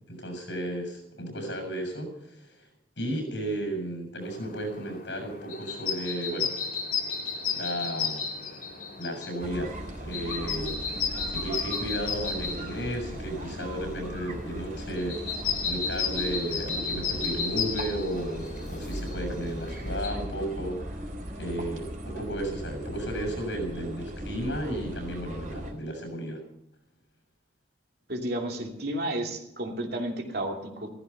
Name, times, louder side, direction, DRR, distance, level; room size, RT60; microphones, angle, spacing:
voice 1, 0.1-2.7 3.0-6.5 7.5-8.2 9.0-9.7 10.0-10.8 11.3-15.2 15.7-20.8 21.3-26.4, right 1 dB, 85° left, 5 dB, 7.3 m, -34 dB
sound 1, 4.2-20.1, left 5 dB, 55° left, 4.1 m, -34 dB
sound 2, 9.4-25.7, equal, 45° right, 4.2 m, -38 dB
voice 2, 28.1-30.9, right 1 dB, 60° right, 2 dB, 2.9 m, -32 dB
16.0 x 14.5 x 5.8 m, 0.78 s
head